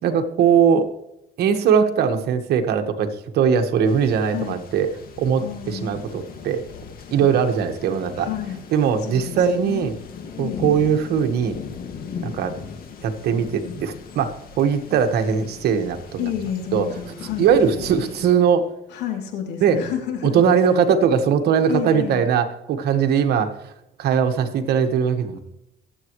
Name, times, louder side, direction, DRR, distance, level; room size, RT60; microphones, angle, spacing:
voice 1, 0.0-0.9 1.4-4.9 5.2-6.6 7.1-8.3 8.7-9.9 10.4-11.6 12.2-12.6 13.0-16.3 16.7-16.9 17.4-18.7 19.6-19.8 20.2-23.7 24.0-25.4, right 7 dB, 70° right, 6 dB, 1.6 m, -20 dB
sound 1, 3.9-18.4, left 6 dB, 60° left, 2.1 m, -38 dB
voice 2, 4.3-4.6 5.4-5.9 8.2-8.6 9.1-9.9 10.4-10.6 16.2-17.5 18.9-20.4 21.7-22.2, left 10 dB, 90° left, 3 dB, 3.0 m, -30 dB
23.0 x 8.4 x 3.2 m, 0.85 s
cardioid pair, 110°, 17 cm